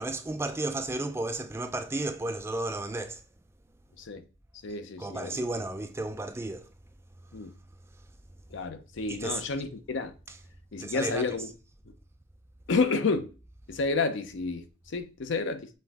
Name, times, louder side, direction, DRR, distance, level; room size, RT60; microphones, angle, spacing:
voice 1, 0.0-3.2 5.0-6.7 9.1-9.4 10.3-10.4 10.8-11.4, right 2 dB, 15° right, 0.3 m, -33 dB
voice 2, 4.6-5.4 7.3-7.5 8.5-10.1 10.7-11.5 11.9-12.0 12.7-13.3 13.7-15.7, left 4 dB, 65° left, 0.5 m, -30 dB
5.4 x 2.6 x 3.5 m
head